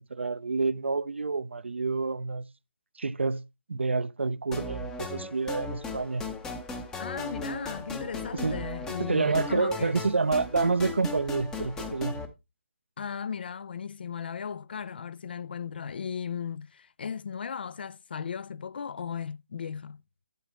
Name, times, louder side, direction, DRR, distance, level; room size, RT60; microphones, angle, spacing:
voice 1, 0.0-2.4 3.0-3.4 3.7-6.2 8.4-8.6 9.0-12.2, right 4 dB, 75° right, 0.5 m, -28 dB
sound 1, 4.5-12.3, left 3 dB, 10° left, 0.7 m, -37 dB
voice 2, 7.0-10.0 13.0-20.0, left 7 dB, 55° left, 0.3 m, -36 dB
8.0 x 7.8 x 3.1 m
figure-of-eight pair, 145°, 6 cm